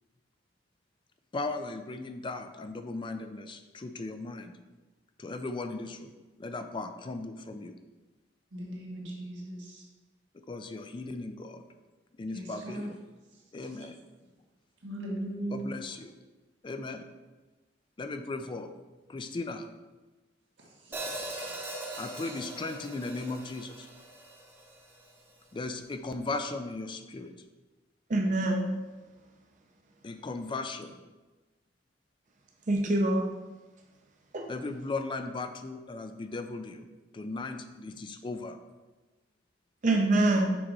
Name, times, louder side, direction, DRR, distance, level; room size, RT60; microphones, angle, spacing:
voice 1, 1.3-4.5 5.2-6.1 6.4-7.8 10.3-11.6 12.1-12.9 13.5-14.0 15.5-16.1 16.6-17.0 18.0-18.7 19.1-19.7 22.0-23.9 25.5-27.3 30.0-30.9 34.5-36.9 37.1-38.6, left 3 dB, 25° left, 8 dB, 0.4 m, -37 dB
voice 2, 8.5-9.8 12.3-12.9 13.3-13.4 13.8-13.9 14.8-15.6 20.6-21.5, right 1 dB, 85° right, -3 dB, 1.6 m, -39 dB
Hi-hat, 20.9-25.1, right 2 dB, 15° right, 0.8 m, -41 dB
voice 3, 28.1-28.7 32.7-33.3 34.3-34.5 39.8-40.5, right 2 dB, 45° right, 1 dB, 0.6 m, -25 dB
6.2 x 3.8 x 4.7 m, 1.2 s
head